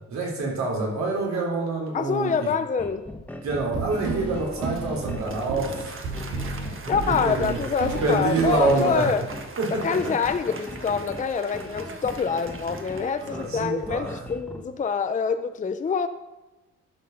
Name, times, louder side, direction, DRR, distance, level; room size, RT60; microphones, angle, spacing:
voice 1, 0.1-2.5 3.4-6.0 7.0-7.6 8.0-9.1 9.6-10.0 13.2-14.2, right 3 dB, 65° right, -2 dB, 3.6 m, -26 dB
voice 2, 1.9-3.1 6.9-9.2 9.8-16.1, left 6 dB, 25° left, 9 dB, 0.6 m, -26 dB
sound 1, 2.8-14.6, left 1 dB, 5° left, 1.2 m, -40 dB
sound 2, 3.5-9.2, right 3 dB, 85° right, 2.3 m, -32 dB
Applause, 4.5-14.0, right 4 dB, 45° right, 1.4 m, -41 dB
11.0 x 5.9 x 5.9 m, 1.1 s
cardioid pair, 90°, 30 cm